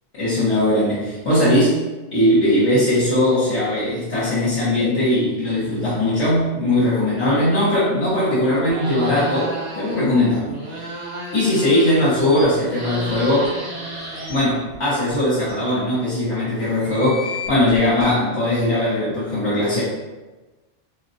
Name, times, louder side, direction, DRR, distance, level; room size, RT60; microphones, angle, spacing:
voice 1, 0.1-1.8 2.1-10.9 11.3-13.6 14.3-19.8, left 1 dB, 70° left, -9 dB, 1.1 m, -19 dB
sound 1, 8.7-10.1 10.4-12.2 12.5-14.8, right 1 dB, 85° right, 1.2 m, -32 dB
sound 2, 11.9-12.4 13.1-13.2 13.4-13.5 14.0-14.4 15.1-15.2 15.5-15.6 16.6-18.1, left 4 dB, 50° right, 1.3 m, -35 dB
3.6 x 2.1 x 2.6 m, 1.2 s
omnidirectional pair, 1.3 m